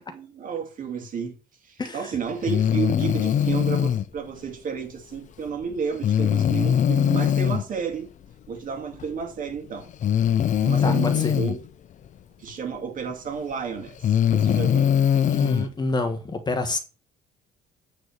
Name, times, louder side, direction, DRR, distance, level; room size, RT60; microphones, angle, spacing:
voice 1, 0.1-1.3 1.6-8.1 8.5-9.9 10.6-11.6 12.4-14.9, right 6 dB, 55° right, 2.4 m, -32 dB
voice 2, 1.8-2.1 10.8-11.3 15.3-16.8, left 2 dB, 25° left, 1.4 m, -27 dB
Breathing, 2.4-4.0 6.0-7.6 9.0-9.1 10.0-11.6 13.1-13.2 13.9-15.7, left 9 dB, 45° left, 0.6 m, -21 dB
8.8 x 4.1 x 6.5 m
cardioid pair, 110°, 17 cm